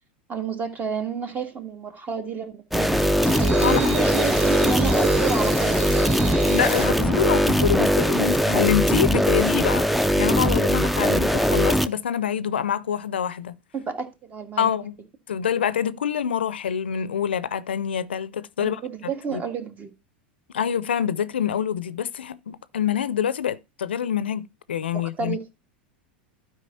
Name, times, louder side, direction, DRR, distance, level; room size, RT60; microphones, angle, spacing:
voice 1, 0.3-3.2 3.6-6.1 13.7-14.8 18.6-19.9 24.9-25.5, right 6 dB, 30° right, 1.7 m, -30 dB
sound 1, 2.7-11.9, equal, ahead, 0.5 m, -20 dB
sound 2, 3.2-7.0, right 5 dB, 70° right, 4.4 m, -31 dB
voice 2, 3.6-4.0 6.5-13.5 14.6-15.0 15.3-18.8 19.3-19.4 20.5-25.4, left 9 dB, 85° left, 0.5 m, -26 dB
12.0 x 4.9 x 4.2 m
hypercardioid pair, 90°, 6 cm